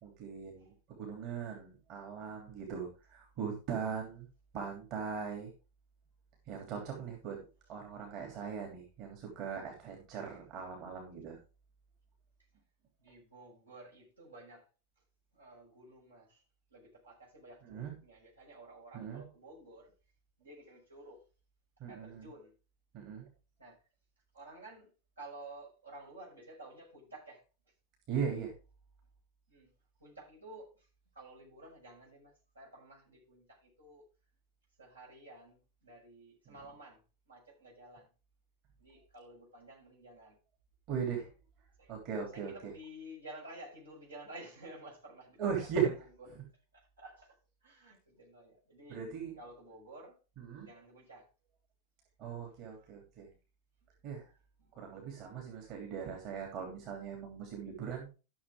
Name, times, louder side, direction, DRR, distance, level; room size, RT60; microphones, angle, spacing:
voice 1, 0.0-4.3 4.5-5.5 6.5-7.4 7.7-11.4 17.6-17.9 18.9-19.2 21.8-22.3 22.9-23.3 28.1-28.5 36.5-36.6 40.9-41.3 41.9-42.7 45.4-45.9 48.9-49.3 50.4-50.7 52.2-53.3 54.0-54.3 54.7-58.1, right 7 dB, 40° right, 3.0 m, -39 dB
voice 2, 13.0-14.7 15.3-16.4 16.7-19.9 20.4-21.2 21.9-22.5 23.6-23.8 24.3-24.9 25.2-27.4 29.5-29.7 30.0-30.9 31.1-34.0 34.8-38.1 38.8-40.4 41.8-41.9 42.3-45.4 45.8-45.9 46.3-46.4 46.7-47.4 47.6-49.0 49.4-50.2 50.6-51.3 54.6-54.9, right 1 dB, 75° right, 5.6 m, -52 dB
13.5 x 6.8 x 3.7 m
figure-of-eight pair, 90°, 0 cm